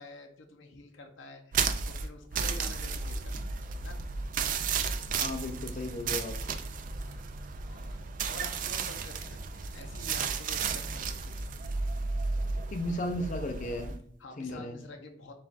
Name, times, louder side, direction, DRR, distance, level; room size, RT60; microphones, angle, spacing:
voice 1, 0.0-4.0 6.9-7.3 7.6-11.4 14.2-15.3, left 2 dB, 75° left, 0.7 m, -49 dB
sound 1, 1.5-14.0, right 5 dB, 40° right, 0.3 m, -33 dB
voice 2, 5.2-6.4 12.7-14.0 14.4-14.8, left 1 dB, 40° left, 0.5 m, -35 dB
6.9 x 2.4 x 2.5 m
head